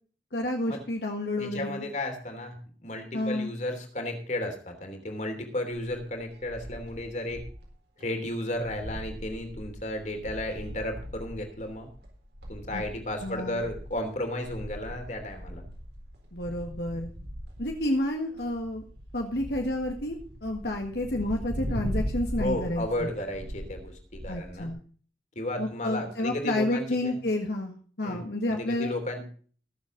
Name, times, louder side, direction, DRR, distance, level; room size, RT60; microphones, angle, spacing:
voice 1, 0.3-1.9 3.1-3.5 12.7-12.8 13.2-13.7 16.3-17.1 17.6-18.8 19.1-20.2 20.4-23.1 24.3-24.8 25.6-28.9, left 1 dB, 65° left, 2 dB, 1.8 m, -30 dB
voice 2, 1.4-7.4 8.0-11.9 12.5-15.6 22.4-24.7 25.3-27.2 28.0-28.2 28.5-29.3, left 1 dB, 40° left, 5 dB, 3.1 m, -34 dB
sound 1, 5.7-7.7 8.0-8.1 8.4-24.7, equal, 75° right, 4.2 m, -39 dB
20.5 x 7.4 x 3.9 m, 0.43 s
head